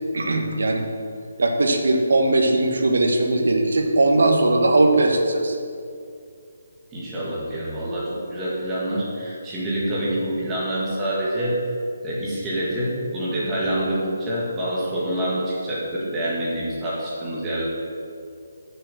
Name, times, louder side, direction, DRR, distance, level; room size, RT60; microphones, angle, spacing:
voice 1, 0.1-0.9 1.4-5.6, right 2 dB, 75° right, 3 dB, 1.3 m, -19 dB
voice 2, 6.9-11.6 12.0-17.7, right 1 dB, 15° right, -7 dB, 2.0 m, -26 dB
6.7 x 6.3 x 6.8 m, 2.3 s
hypercardioid pair, 165°, 0 cm